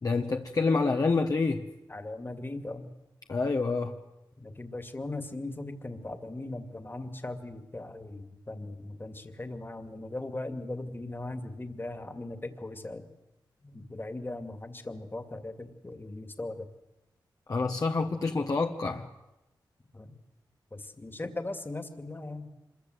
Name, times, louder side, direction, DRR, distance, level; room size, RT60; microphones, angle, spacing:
voice 1, 0.0-1.6 3.3-3.9 17.5-19.1, left 3 dB, 45° left, 2 dB, 1.4 m, -27 dB
voice 2, 1.9-2.9 4.4-13.1 13.6-16.7 19.9-20.2 20.7-22.5, left 2 dB, 25° left, 8 dB, 2.4 m, -39 dB
26.0 x 22.5 x 8.1 m, 0.97 s
cardioid pair, 65°, 8 cm